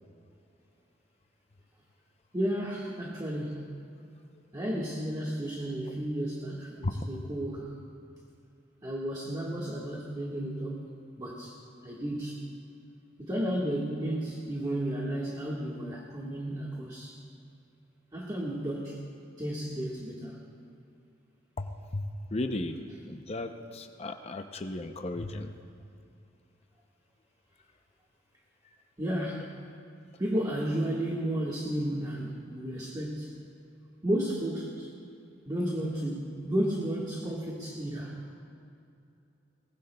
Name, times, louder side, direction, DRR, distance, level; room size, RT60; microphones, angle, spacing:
voice 1, 2.3-3.6 4.5-7.7 8.8-10.9 11.2-11.6 11.8-12.5 13.2-17.2 18.1-19.0 19.4-20.4 29.0-29.5 30.2-33.3 34.0-34.9 35.4-38.1, right 1 dB, 20° right, -4 dB, 1.5 m, -33 dB
voice 2, 21.6-22.8 23.0-25.5, left 2 dB, 35° left, 5 dB, 0.6 m, -35 dB
22.0 x 19.5 x 2.3 m, 2.6 s
head